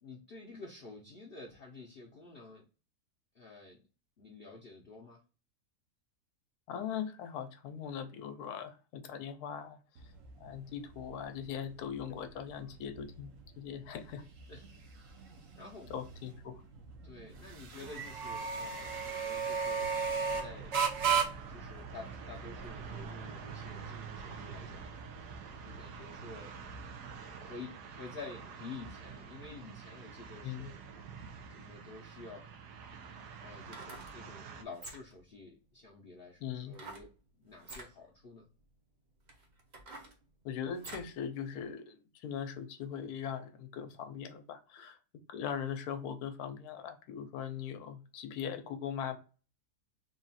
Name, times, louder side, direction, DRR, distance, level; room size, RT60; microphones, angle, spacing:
voice 1, 0.0-2.6 3.3-3.8 4.2-5.2 12.5-12.7 14.5-14.7 15.6-15.9 17.0-19.9 20.2-20.8 21.5-24.9 25.6-26.5 27.4-30.8 31.5-32.4 33.4-37.1 37.4-38.5, left 4 dB, 55° left, 0.7 m, -50 dB
voice 2, 6.7-9.8 10.4-14.3 15.9-16.6 30.4-30.7 36.4-36.7 40.4-45.0 45.3-49.2, left 8 dB, 75° left, 1.1 m, -40 dB
sound 1, 10.0-27.2, right 6 dB, 60° right, 1.1 m, -38 dB
sound 2, 17.7-34.6, right 6 dB, 80° right, 1.2 m, -48 dB
sound 3, 33.5-34.2 34.7-35.3 36.7-37.1 37.6-37.9 38.6-38.7 39.3-41.2 41.6-41.7, right 2 dB, 35° right, 0.7 m, -48 dB
3.7 x 2.4 x 4.0 m
omnidirectional pair, 1.7 m